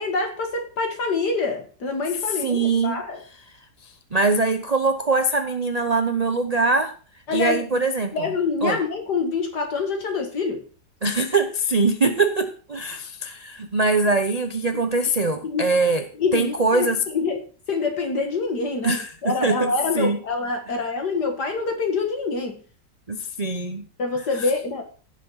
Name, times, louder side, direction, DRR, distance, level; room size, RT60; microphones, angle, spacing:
voice 1, 0.0-3.2 7.3-7.6 8.1-10.6 14.7-14.9 15.4-15.7 16.2-16.9 17.1-17.4 17.7-22.6 24.0-24.8, left 4 dB, 65° left, 4 dB, 2.4 m, -26 dB
voice 2, 2.4-3.0 3.8-6.9 7.3-8.1 8.6-8.8 11.0-16.1 16.3-17.0 18.8-20.2 23.1-23.9, right 3 dB, 30° right, 8 dB, 0.8 m, -22 dB
16.0 x 6.5 x 5.7 m, 0.40 s
omnidirectional pair, 1.9 m